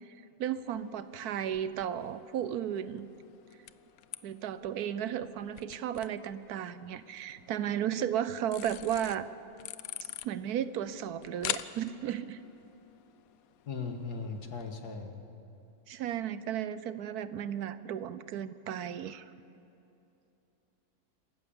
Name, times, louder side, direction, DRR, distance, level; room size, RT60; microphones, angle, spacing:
voice 1, 0.4-3.1 4.2-9.3 10.2-12.4 15.9-19.3, right 10 dB, 80° right, 14 dB, 1.3 m, -34 dB
sound 1, 0.6-14.7, left 12 dB, 70° left, 1.0 m, -46 dB
voice 2, 13.7-15.2, left 4 dB, 85° left, 5 dB, 2.2 m, -38 dB
26.5 x 14.0 x 7.1 m, 2.8 s
omnidirectional pair, 1.6 m